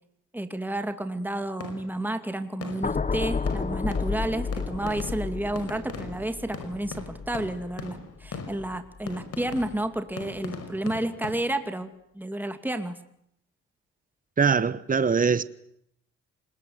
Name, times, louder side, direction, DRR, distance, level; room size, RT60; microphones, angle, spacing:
voice 1, 0.3-13.0, right 1 dB, 5° right, 2.5 m, -31 dB
sound 1, 1.6-2.1 2.6-3.2 3.5-11.3, left 5 dB, 50° left, 5.6 m, -40 dB
sound 2, 2.8-9.1 9.5-9.8, left 4 dB, 25° left, 1.2 m, -32 dB
voice 2, 14.4-15.4, right 5 dB, 25° right, 1.2 m, -22 dB
26.5 x 21.5 x 9.5 m
cardioid pair, 90°, 30 cm